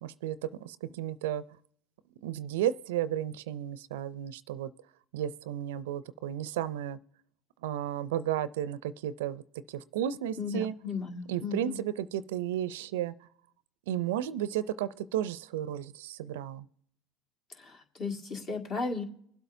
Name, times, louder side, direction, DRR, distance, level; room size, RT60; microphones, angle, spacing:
voice 1, 0.0-1.4 2.2-4.7 5.1-7.0 7.6-9.4 9.7-10.7 11.3-13.1 13.9-16.7, right 11 dB, 80° right, 17 dB, 0.4 m, -33 dB
voice 2, 10.4-11.8 17.5-19.0, left 4 dB, 50° left, 3 dB, 1.9 m, -35 dB
23.0 x 8.1 x 2.7 m, 0.67 s
hypercardioid pair, 75°, 0 cm